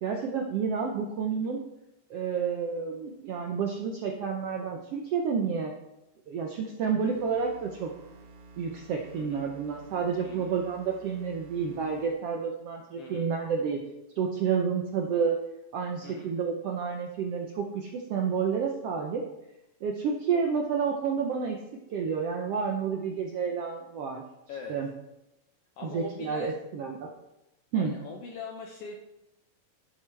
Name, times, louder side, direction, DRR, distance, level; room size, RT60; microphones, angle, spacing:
voice 1, 0.0-1.6 2.1-5.7 6.3-7.9 8.6-13.8 14.2-15.3 15.7-19.2 19.8-21.6 21.9-24.2 24.7-24.9 25.8-27.1 27.7-27.9, right 6 dB, 70° right, 2 dB, 1.4 m, -30 dB
sound 1, 7.0-12.1, right 3 dB, 55° right, 2.2 m, -51 dB
voice 2, 9.1-9.5 10.2-10.6 13.0-13.4 16.0-16.3 24.5-24.8 25.8-26.6 27.7-29.0, left 5 dB, 75° left, 1 dB, 1.4 m, -42 dB
11.0 x 8.6 x 3.3 m, 0.91 s
omnidirectional pair, 3.6 m